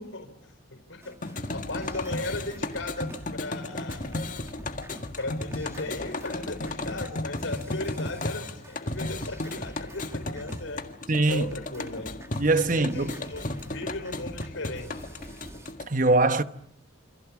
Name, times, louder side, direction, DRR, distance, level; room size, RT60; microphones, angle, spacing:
voice 1, 0.0-4.3 5.2-10.9 11.3-15.1, left 2 dB, 75° left, 4.8 m, -37 dB
sound 1, 1.0-3.5 3.8-10.9 11.2-15.7, equal, 15° right, 1.3 m, -46 dB
sound 2, 1.2-15.9, left 2 dB, 40° left, 1.8 m, -35 dB
voice 2, 11.1-11.5 12.4-13.2 15.9-16.4, right 2 dB, 40° right, 1.0 m, -22 dB
27.5 x 27.0 x 7.3 m
head